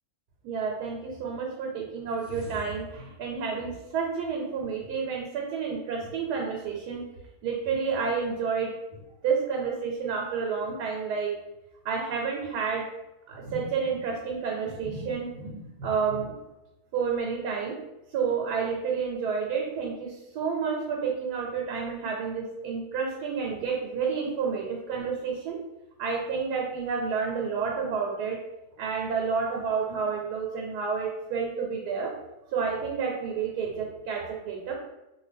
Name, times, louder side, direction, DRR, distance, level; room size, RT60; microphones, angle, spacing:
voice 1, 0.4-7.1 7.4-11.4 11.8-12.9 13.3-16.4 16.9-17.8 18.1-25.6 26.0-28.4 28.8-32.1 32.5-34.7, right 5 dB, 80° right, 0 dB, 1.1 m, -30 dB
2.6 x 2.4 x 3.3 m, 0.96 s
omnidirectional pair, 1.7 m